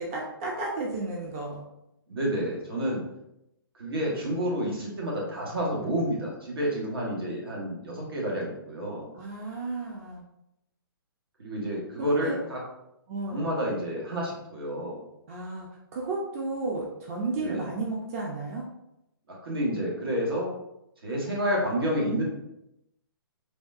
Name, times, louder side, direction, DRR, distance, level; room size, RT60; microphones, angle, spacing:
voice 1, 0.0-1.6 9.1-10.2 12.0-12.4 13.1-13.6 15.3-18.6, right 3 dB, 35° right, -2 dB, 0.5 m, -33 dB
voice 2, 2.1-3.0 3.7-9.1 11.4-12.6 13.3-15.0 17.4-17.6 19.3-20.5 21.0-22.2, equal, 75° right, -3 dB, 1.4 m, -29 dB
3.4 x 2.3 x 2.6 m, 0.85 s
hypercardioid pair, 145°, 12 cm